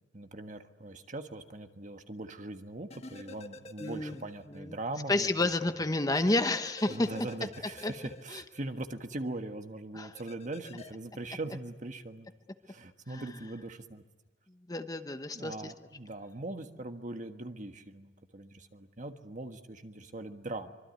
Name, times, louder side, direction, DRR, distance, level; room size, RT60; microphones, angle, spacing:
voice 1, 0.1-5.5 6.9-12.3 12.7-14.0 15.3-20.7, right 2 dB, 45° right, 7 dB, 1.5 m, -41 dB
sound 1, 2.9-4.6 4.9-5.0 6.1-9.0 10.1-10.9, left 1 dB, 35° left, 1.3 m, -48 dB
voice 2, 3.8-4.2 4.5-4.8 5.1-7.1 7.8-7.9 8.3-8.4 9.9-10.1 13.1-13.3 14.7-15.7, left 2 dB, 20° left, 8 dB, 1.0 m, -30 dB
25.0 x 24.0 x 9.5 m, 1.2 s
head